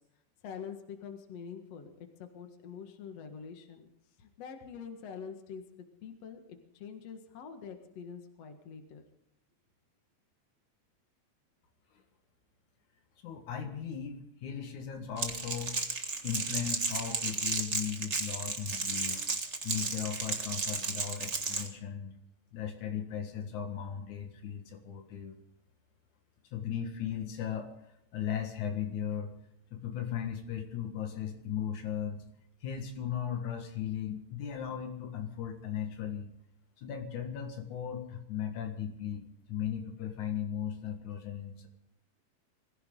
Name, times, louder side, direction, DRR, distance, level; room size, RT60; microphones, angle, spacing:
voice 1, 0.4-3.9 4.2-9.0, left 6 dB, 60° left, 5 dB, 2.7 m, -45 dB
voice 2, 13.2-15.8 16.2-19.2 19.6-22.1 22.5-25.3 26.5-27.7 28.1-29.3 29.7-32.2 32.6-36.3 36.8-39.2 39.5-41.7, left 9 dB, 80° left, 4 dB, 3.1 m, -37 dB
Crackle, 15.2-21.7, right 4 dB, 30° right, 1.3 m, -34 dB
23.0 x 15.5 x 3.9 m, 0.78 s
omnidirectional pair, 3.4 m